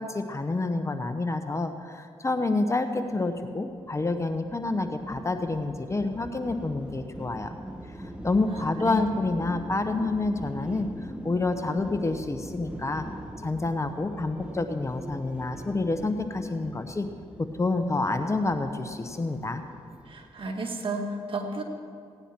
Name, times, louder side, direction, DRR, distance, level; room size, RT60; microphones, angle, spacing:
voice 1, 0.0-7.5 7.9-13.0 13.4-17.1 17.4-19.6, left 2 dB, 25° left, 8 dB, 0.9 m, -28 dB
sound 1, 3.1-20.5, right 1 dB, 10° right, 1.0 m, -43 dB
voice 2, 8.5-9.0 20.1-21.6, right 2 dB, 50° right, 2 dB, 1.8 m, -33 dB
17.0 x 9.9 x 4.4 m, 2.2 s
cardioid pair, 65°, 11 cm